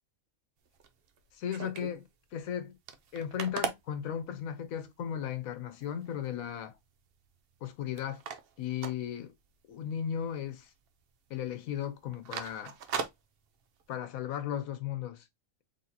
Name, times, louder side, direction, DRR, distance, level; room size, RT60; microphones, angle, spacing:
sound 1, 0.7-2.0 2.4-2.5 2.7-4.9 5.4-5.5 5.8-6.3 6.7-7.7 8.0-9.8 10.0-10.2 10.6-11.0 11.3-11.5 11.9-13.9, right 6 dB, 55° right, 0.7 m, -39 dB
voice 1, 1.3-2.0 2.3-2.7 3.1-6.8 7.6-8.2 8.6-9.3 9.7-10.7 11.3-12.8 13.9-15.3, left 9 dB, 90° left, 1.2 m, -36 dB
4.1 x 3.6 x 2.7 m
omnidirectional pair, 1.4 m